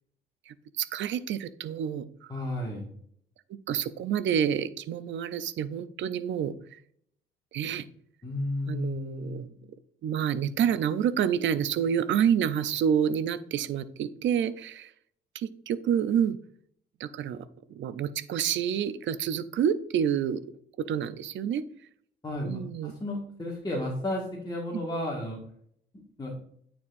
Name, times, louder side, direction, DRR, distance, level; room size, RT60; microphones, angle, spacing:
voice 1, 0.5-2.3 3.5-6.8 7.5-7.8 8.7-9.5 10.0-14.9 15.3-16.4 17.0-17.4 17.8-20.4 20.8-21.6 22.4-22.9, right 8 dB, 70° right, 14 dB, 0.6 m, -28 dB
voice 2, 2.3-2.9 8.2-9.4 22.2-25.4 26.2-26.4, left 1 dB, 20° left, -4 dB, 1.7 m, -33 dB
9.3 x 4.3 x 2.6 m, 0.64 s
cardioid pair, 90°, 20 cm